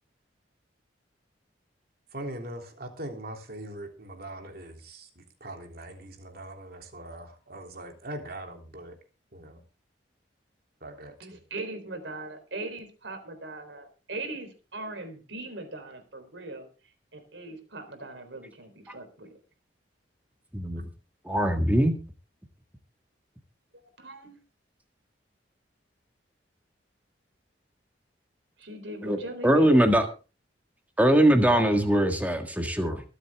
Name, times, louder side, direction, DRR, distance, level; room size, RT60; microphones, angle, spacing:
voice 1, 2.1-4.7 5.4-8.9 9.3-9.6 10.8-11.1, right 1 dB, 55° right, 3 dB, 3.3 m, -41 dB
voice 2, 11.2-16.7 17.1-19.4 23.7-24.4 28.6-29.9, right 2 dB, 75° right, 7 dB, 3.9 m, -40 dB
voice 3, 21.3-21.9 29.0-29.2 29.4-30.0 31.0-33.0, right 1 dB, 10° right, 5 dB, 1.7 m, -21 dB
24.0 x 8.1 x 3.6 m, 0.34 s
head